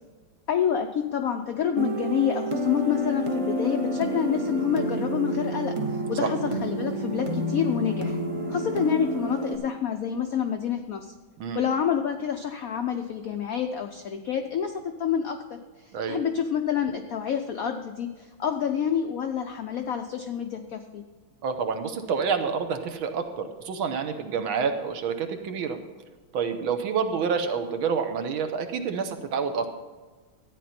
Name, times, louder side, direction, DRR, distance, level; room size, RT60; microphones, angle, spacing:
voice 1, 0.5-5.7 6.1-8.2 8.5-11.1 11.5-15.6 15.8-21.0, left 8 dB, 75° left, 6 dB, 0.8 m, -28 dB
sound 1, 1.8-9.6, right 1 dB, 40° right, 0.4 m, -29 dB
voice 2, 21.4-25.8 26.3-29.7, right 6 dB, 80° right, 6 dB, 1.8 m, -28 dB
13.5 x 9.2 x 4.3 m, 1.3 s
omnidirectional pair, 2.3 m